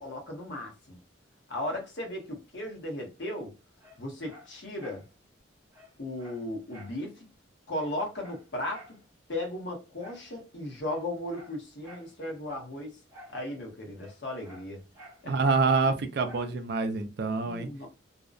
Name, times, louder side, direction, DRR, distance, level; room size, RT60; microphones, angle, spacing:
voice 1, 0.0-1.0 1.5-3.5 4.0-5.0 6.0-7.3 7.7-9.0 9.3-13.0 13.3-14.8 15.2-15.3 15.8-15.9 17.4-17.9, left 1 dB, 60° left, 0.9 m, -36 dB
Dog, 3.8-5.1 5.4-5.5 5.7-7.0 7.3-7.4 7.7-9.0 10.0-10.3 10.8-12.1 13.1-13.4 13.7-15.3 16.2-16.6 17.0-17.1, equal, 15° right, 0.9 m, -52 dB
voice 2, 15.2-17.7, right 4 dB, 55° right, 0.4 m, -26 dB
2.6 x 2.1 x 2.4 m
head